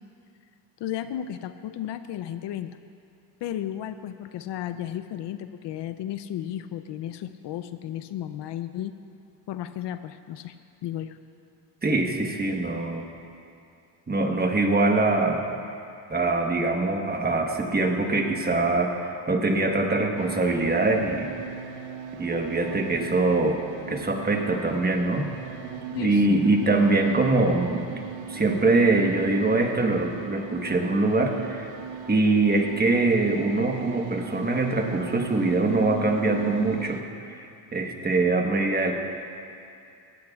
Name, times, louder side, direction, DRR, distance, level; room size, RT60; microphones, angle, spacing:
voice 1, 0.8-2.8 3.4-8.9 9.5-10.5 10.8-11.2 25.9-26.4, left 11 dB, 60° left, 11 dB, 0.6 m, -34 dB
voice 2, 11.8-13.0 14.1-15.4 16.1-21.3 22.2-23.6 23.9-25.3 26.0-28.0 28.3-31.8 32.1-37.0 37.3-38.9, right 2 dB, 20° right, 3 dB, 1.2 m, -23 dB
sound 1, 20.2-37.0, right 7 dB, 70° right, 0.8 m, -38 dB
18.0 x 14.0 x 2.4 m, 2.5 s
cardioid pair, 95°, 47 cm